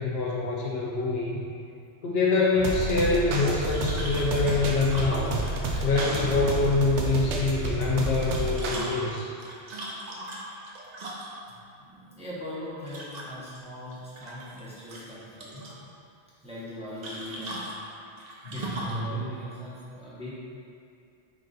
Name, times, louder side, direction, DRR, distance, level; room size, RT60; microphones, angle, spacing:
voice 1, 0.0-1.4 2.0-5.4 5.8-9.3 18.4-19.2, left 3 dB, 65° left, -4 dB, 0.8 m, -25 dB
sound 1, 2.6-8.8, right 2 dB, 85° right, 0.9 m, -30 dB
sound 2, 3.7-6.8 8.1-11.5 12.9-13.6 13.9-14.6 14.9-15.8 17.0-19.0, right 1 dB, 45° right, 0.6 m, -39 dB
voice 2, 11.8-15.7 16.4-17.7 18.5-20.3, left 1 dB, 5° right, -9 dB, 0.9 m, -40 dB
3.9 x 3.4 x 4.0 m, 2.4 s
omnidirectional pair, 1.1 m